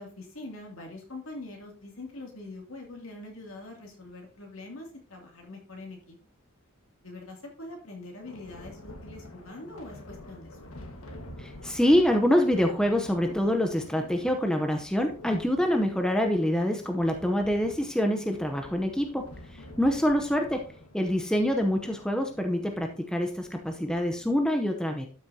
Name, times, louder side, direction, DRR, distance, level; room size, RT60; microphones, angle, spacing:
voice 1, 0.0-6.2 7.0-10.7 19.5-19.7, left 2 dB, 70° left, 1 dB, 2.6 m, -43 dB
Thunder, 8.2-24.5, left 1 dB, 85° left, 1.6 m, -48 dB
voice 2, 11.4-19.3 19.8-20.7 20.9-25.1, equal, 5° left, 4 dB, 0.7 m, -25 dB
12.0 x 6.2 x 2.8 m, 0.40 s
head